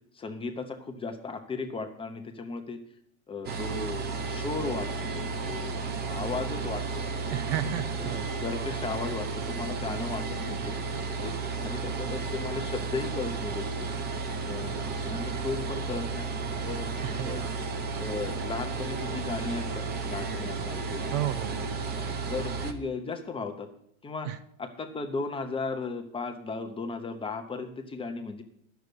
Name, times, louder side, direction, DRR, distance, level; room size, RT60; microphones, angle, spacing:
voice 1, 0.1-2.8 3.3-5.8 6.0-7.0 7.3-7.4 8.0-10.8 11.2-11.3 11.6-13.9 14.4-17.4 18.0-21.1 21.9-22.0 22.3-23.7 24.0-24.3 24.6-28.4, left 4 dB, 15° left, 5 dB, 0.9 m, -36 dB
sound 1, 3.4-22.7, right 4 dB, 25° right, 0.9 m, -33 dB
voice 2, 7.3-8.3 17.0-17.5 21.1-21.6 24.3-24.4, right 12 dB, 55° right, 13 dB, 0.8 m, -32 dB
9.5 x 7.0 x 7.9 m, 0.69 s
supercardioid pair, 135°, 41 cm